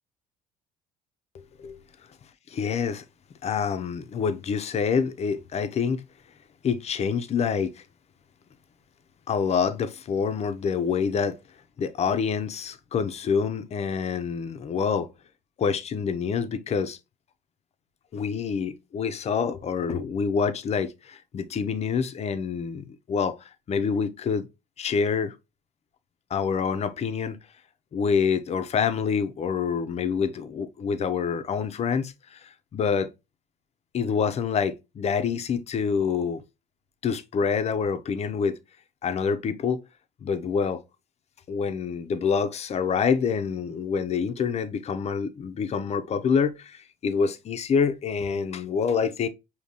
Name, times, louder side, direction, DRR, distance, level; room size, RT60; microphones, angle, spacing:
voice 1, 2.5-3.0 3.4-6.0 6.6-7.8 9.3-11.4 11.8-15.1 15.6-17.0 18.1-23.4 23.7-24.5 24.8-25.3 26.3-27.4 27.9-32.4 32.7-33.1 33.9-36.4 37.0-38.6 39.0-39.8 40.2-40.8 41.5-49.3, left 6 dB, 40° left, 0.6 m, -26 dB
5.1 x 2.8 x 2.7 m
cardioid pair, 110°, 17 cm